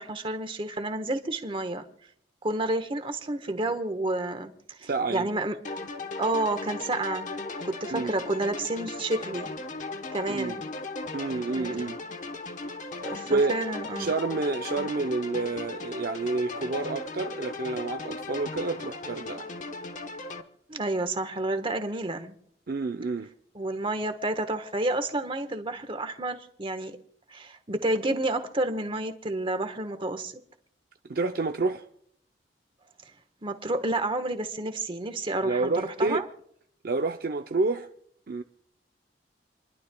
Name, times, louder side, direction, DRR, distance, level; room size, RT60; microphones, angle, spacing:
voice 1, 0.0-1.9 2.4-5.6 6.2-7.3 7.6-9.5 10.1-10.6 11.5-11.8 13.0-14.1 20.7-22.4 23.5-27.0 27.3-30.3 33.4-36.2, right 2 dB, 30° right, 1.2 m, -30 dB
voice 2, 4.8-5.3 7.9-8.1 10.3-10.6 11.1-12.0 13.0-13.5 14.0-19.5 22.7-23.3 31.1-31.9 35.4-36.3 36.8-37.9 38.3-38.4, right 3 dB, 55° right, 0.6 m, -29 dB
sound 1, 5.6-20.4, left 3 dB, 45° left, 1.1 m, -37 dB
28.5 x 11.5 x 2.3 m
head